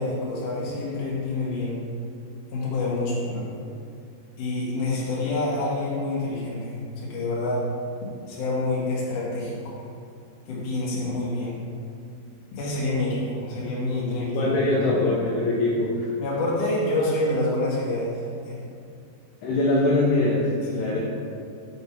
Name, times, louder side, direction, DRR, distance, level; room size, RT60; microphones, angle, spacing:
voice 1, 0.0-1.8 2.5-3.5 4.4-7.6 8.3-9.7 10.5-11.5 12.5-14.5 16.2-18.6 20.7-20.9, left 2 dB, 55° left, -7 dB, 3.1 m, -27 dB
voice 2, 14.2-16.1 19.4-21.0, left 2 dB, 80° left, -6 dB, 2.8 m, -23 dB
8.8 x 5.5 x 4.3 m, 2.4 s
omnidirectional pair, 5.0 m